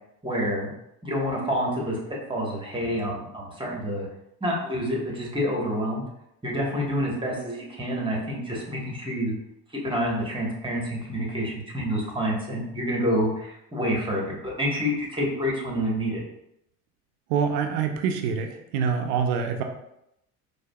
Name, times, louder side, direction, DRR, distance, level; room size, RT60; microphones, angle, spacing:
voice 1, 0.2-0.7 1.0-4.1 4.4-6.0 6.4-9.3 9.8-16.2, equal, 10° right, -2 dB, 1.3 m, -28 dB
voice 2, 17.3-19.6, right 6 dB, 80° right, 5 dB, 0.6 m, -25 dB
4.8 x 2.5 x 2.3 m, 0.81 s
hypercardioid pair, 70°, 46 cm